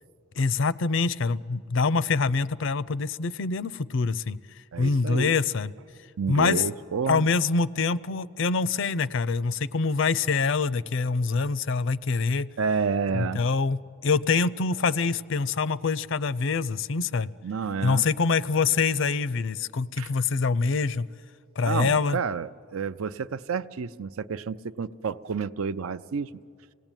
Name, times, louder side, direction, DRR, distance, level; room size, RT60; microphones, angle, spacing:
voice 1, 0.4-4.4 4.8-5.7 6.3-6.6 7.1-12.5 13.1-17.3 17.8-21.1 21.6-22.2, left 4 dB, 60° left, 0.5 m, -25 dB
voice 2, 4.7-5.4 6.2-7.3 12.6-13.4 17.4-18.0 20.0-20.1 21.6-26.3, right 5 dB, 80° right, 0.5 m, -30 dB
27.0 x 18.0 x 9.0 m
head